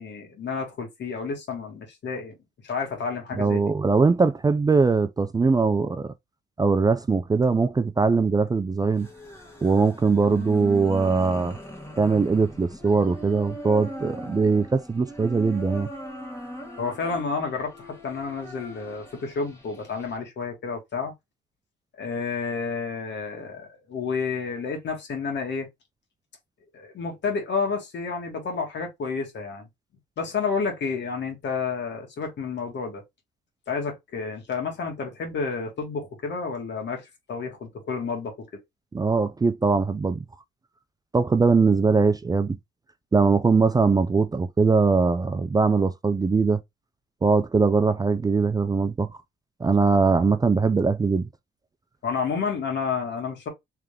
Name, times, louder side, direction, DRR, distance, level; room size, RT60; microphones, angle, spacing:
voice 1, 0.0-2.4 2.6-3.6 16.8-21.1 22.0-25.7 26.7-29.7 30.2-33.0 33.7-38.5 52.0-53.5, left 5 dB, 65° left, 2.1 m, -30 dB
voice 2, 3.3-6.1 6.6-9.1 9.6-11.6 12.0-15.9 38.9-40.2 41.1-42.6 43.1-46.6 47.2-49.1 49.6-51.3, right 4 dB, 20° right, 0.4 m, -21 dB
sound 1, 8.9-20.2, equal, 10° left, 1.6 m, -40 dB
3.7 x 3.3 x 3.2 m
cardioid pair, 90°, 20 cm